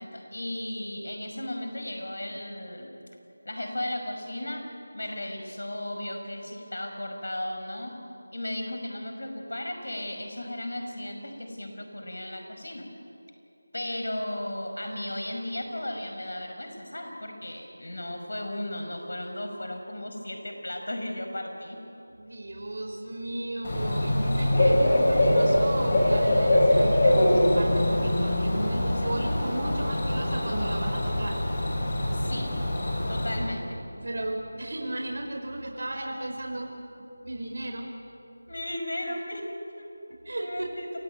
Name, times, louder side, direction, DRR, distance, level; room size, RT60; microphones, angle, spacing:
voice 1, 0.0-2.9 3.4-4.6 4.9-7.9 8.3-12.8 13.7-21.8 32.1-32.6 33.1-33.8 38.5-41.0, left 1 dB, 70° left, 4 dB, 5.6 m, -35 dB
voice 2, 22.1-31.4 34.0-36.8 37.2-37.9 40.2-40.8, right 1 dB, 55° right, 1 dB, 4.8 m, -34 dB
Bird / Cricket, 23.6-33.4, left 1 dB, 35° left, 7.4 m, -23 dB
28.5 x 17.0 x 9.4 m, 2.8 s
figure-of-eight pair, 170°, 0 cm